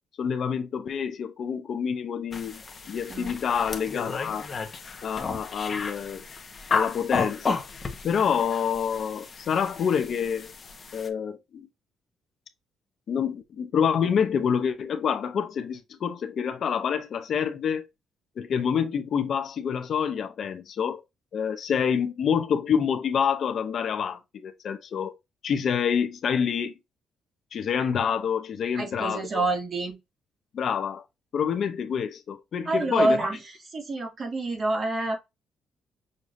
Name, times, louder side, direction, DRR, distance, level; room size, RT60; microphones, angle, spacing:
voice 1, 0.2-2.6 2.9-4.5 5.0-6.2 6.7-7.7 8.0-10.5 10.9-11.7 13.1-17.9 18.4-21.0 21.3-25.1 25.4-26.7 27.5-29.5 30.5-31.0 31.3-33.2, left 7 dB, 60° left, 0.7 m, -27 dB
sound 1, 2.3-11.1, left 4 dB, 40° left, 1.0 m, -33 dB
voice 2, 28.7-30.0 32.7-33.4 33.7-35.2, right 2 dB, 45° right, 2.3 m, -27 dB
6.5 x 2.8 x 2.7 m
cardioid pair, 90°, 0 cm